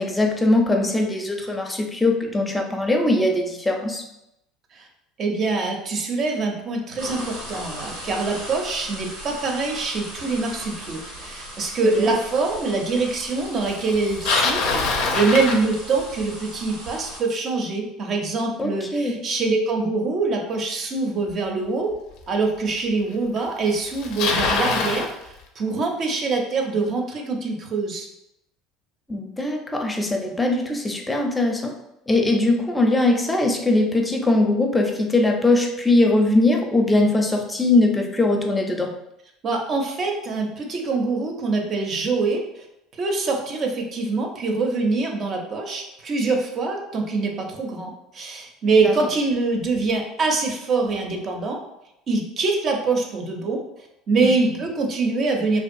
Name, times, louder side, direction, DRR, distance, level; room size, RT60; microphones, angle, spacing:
voice 1, 0.0-4.0 12.0-12.1 18.6-19.1 29.1-31.7 32.1-38.9 48.8-48.9 54.2-54.3, left 2 dB, 15° left, 2 dB, 0.5 m, -21 dB
voice 2, 5.2-21.9 22.3-28.1 39.4-42.7 43.0-51.6 52.1-53.6 54.1-55.6, right 3 dB, 45° right, 2 dB, 0.6 m, -24 dB
sound 1, 7.0-17.2, right 1 dB, 90° right, 0.8 m, -38 dB
Bicycle, 13.9-16.2 21.3-21.4 22.2-22.3 23.4-23.5 23.7-25.1, left 3 dB, 65° left, 0.5 m, -23 dB
2.5 x 2.4 x 2.6 m, 0.85 s
hypercardioid pair, 75°, 0 cm